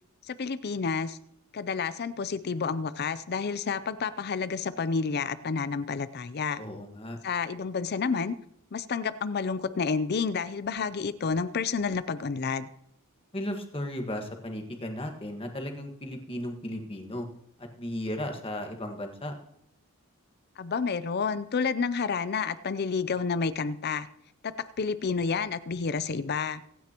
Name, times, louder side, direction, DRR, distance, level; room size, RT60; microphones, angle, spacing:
voice 1, 0.3-1.2 1.5-6.6 7.2-8.3 8.7-12.7 20.6-24.1 24.4-26.6, left 5 dB, 50° left, 14 dB, 0.5 m, -30 dB
voice 2, 6.6-7.2 13.3-17.3 17.6-19.4, left 1 dB, 25° left, 3 dB, 1.6 m, -35 dB
24.5 x 9.3 x 3.0 m, 0.72 s
head